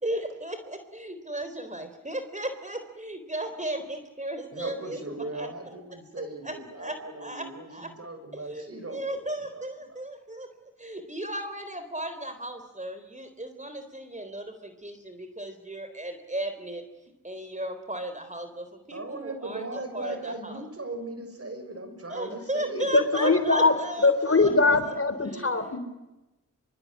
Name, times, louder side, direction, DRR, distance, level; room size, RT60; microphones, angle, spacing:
voice 1, 0.0-5.0 5.3-5.5 6.4-7.9 8.3-10.5 10.8-16.8 17.2-20.6 22.1-24.5 24.8-25.8, right 1 dB, 25° right, 8 dB, 3.8 m, -35 dB
voice 2, 4.5-9.2 9.5-10.0 18.9-23.4, right 2 dB, 50° right, 7 dB, 7.0 m, -38 dB
voice 3, 22.7-23.7 24.0-25.8, left 3 dB, 45° left, 10 dB, 3.8 m, -22 dB
25.0 x 23.5 x 9.6 m, 0.99 s
cardioid pair, 45°, 32 cm